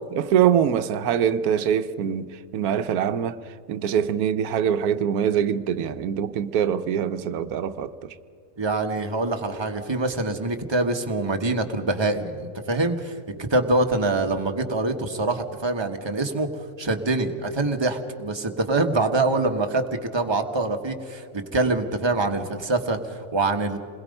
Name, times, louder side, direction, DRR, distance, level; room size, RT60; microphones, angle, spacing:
voice 1, 0.1-8.1, right 9 dB, 85° right, 1.2 m, -24 dB
voice 2, 8.6-16.5 16.8-23.8, right 2 dB, 20° right, 1.3 m, -25 dB
28.0 x 21.0 x 5.3 m
omnidirectional pair, 1.5 m